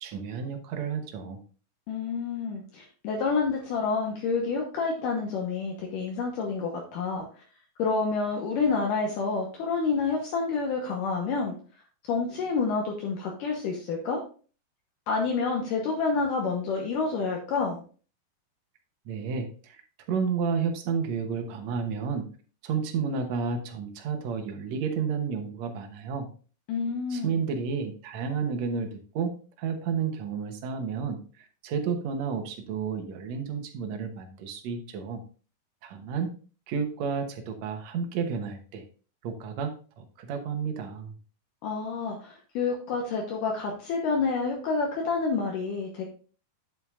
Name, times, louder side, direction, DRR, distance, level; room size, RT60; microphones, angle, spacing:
voice 1, 0.0-1.4 19.1-19.8 20.1-22.3 22.6-26.3 27.1-31.2 31.6-35.2 35.8-36.3 36.7-38.8 39.2-41.2, right 6 dB, 65° right, 5 dB, 1.9 m, -31 dB
voice 2, 1.9-7.3 7.8-11.5 12.1-14.2 15.1-17.8 26.7-27.3 41.6-46.0, left 4 dB, 70° left, 0 dB, 2.4 m, -28 dB
9.1 x 7.7 x 2.4 m, 0.39 s
omnidirectional pair, 4.2 m